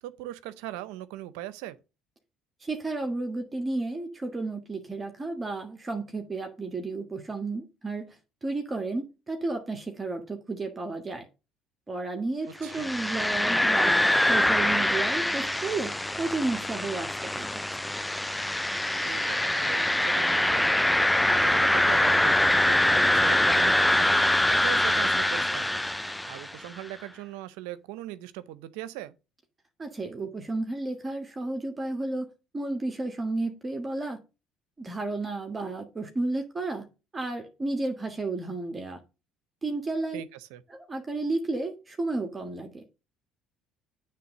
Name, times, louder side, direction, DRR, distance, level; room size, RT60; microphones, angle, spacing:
voice 1, 0.0-1.8 12.6-12.9 19.0-29.1 40.1-40.6, right 14 dB, 80° right, 0.6 m, -40 dB
voice 2, 2.6-8.2 8.4-11.2 11.9-17.6 29.8-32.3 32.5-34.2 34.8-36.8 37.1-39.0 39.6-40.2 40.7-42.8, right 2 dB, 25° right, 1.6 m, -32 dB
sound 1, 12.7-26.6, left 1 dB, 5° left, 0.3 m, -24 dB
9.3 x 3.5 x 6.5 m
supercardioid pair, 75°, 0 cm